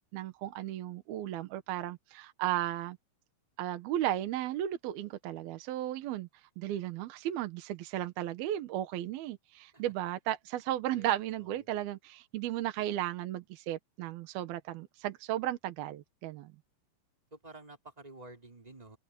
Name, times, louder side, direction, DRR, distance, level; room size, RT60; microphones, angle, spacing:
voice 1, 0.0-3.0 3.6-6.3 6.6-16.5, right 13 dB, 70° right, 2.3 m, -35 dB
voice 2, 10.9-11.7 17.3-19.0, right 2 dB, 10° right, 3.8 m, -51 dB
omnidirectional pair, 5.9 m